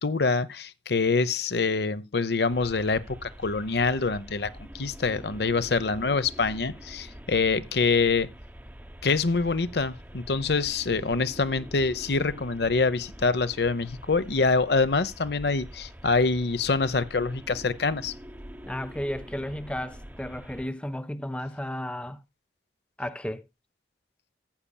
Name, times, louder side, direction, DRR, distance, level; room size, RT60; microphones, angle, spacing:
voice 1, 0.0-4.5 4.7-8.3 9.0-18.1, left 4 dB, 70° left, 0.8 m, -25 dB
sound 1, 2.5-20.7, equal, 10° right, 0.8 m, -45 dB
voice 2, 18.6-22.2 23.0-23.4, left 1 dB, 5° left, 0.5 m, -33 dB
14.5 x 8.6 x 2.2 m
head